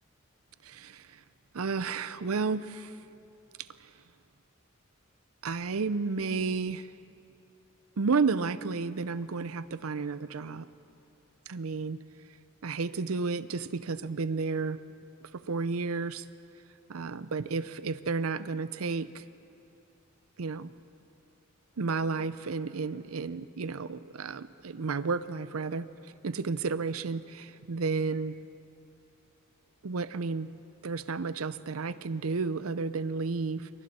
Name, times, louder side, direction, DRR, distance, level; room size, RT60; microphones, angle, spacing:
voice 1, 0.6-1.2 1.5-3.0 3.6-3.9 5.4-6.9 8.0-10.7 11.5-12.0 12.6-14.8 15.3-16.3 16.9-19.2 20.4-20.7 21.8-25.9 26.2-28.4 29.8-30.5 30.8-33.7, right 4 dB, 90° right, 15 dB, 0.6 m, -32 dB
27.0 x 24.0 x 4.3 m, 2.8 s
head